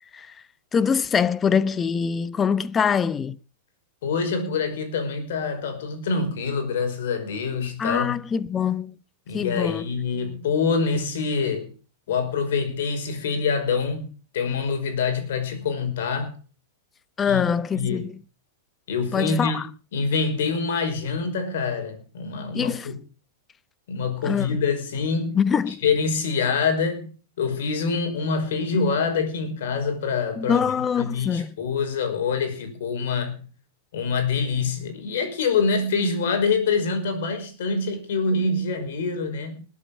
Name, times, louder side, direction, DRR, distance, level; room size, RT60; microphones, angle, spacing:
voice 1, 0.7-3.4 7.8-8.9 9.3-9.8 17.2-18.2 19.1-19.6 22.5-22.9 24.2-24.5 25.3-25.8 30.4-31.6, left 6 dB, 20° left, 0.9 m, -24 dB
voice 2, 4.0-8.2 9.3-11.7 12.1-16.4 17.3-18.1 18.9-19.7 19.9-23.0 23.9-25.4 25.8-27.1 27.4-30.7 31.0-33.5 33.9-39.6, left 5 dB, 65° left, 5.3 m, -25 dB
20.5 x 8.7 x 5.4 m
hypercardioid pair, 105°, 0 cm